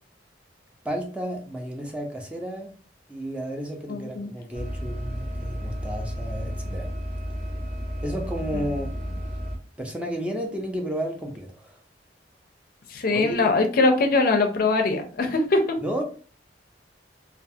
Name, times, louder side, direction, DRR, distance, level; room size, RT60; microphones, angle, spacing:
voice 1, 0.8-2.7 3.1-6.9 8.0-8.9 9.8-11.8 13.1-13.5 15.8-16.0, equal, 5° right, 1 dB, 0.4 m, -32 dB
voice 2, 3.9-4.3 12.9-15.6, left 3 dB, 50° left, 5 dB, 0.4 m, -22 dB
sound 1, 4.5-9.6, equal, 40° right, 0.7 m, -32 dB
2.3 x 2.3 x 2.6 m, 0.38 s
head